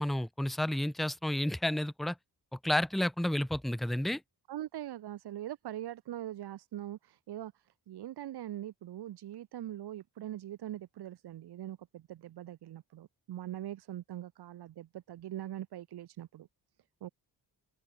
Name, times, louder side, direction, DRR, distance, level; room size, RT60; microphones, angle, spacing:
voice 1, 0.0-2.2 2.5-4.2, left 1 dB, ahead, 0.6 m, -31 dB
voice 2, 4.5-16.5 17.0-17.1, right 12 dB, 85° right, 1.0 m, -42 dB
open air
wide cardioid pair, 150°, 38 cm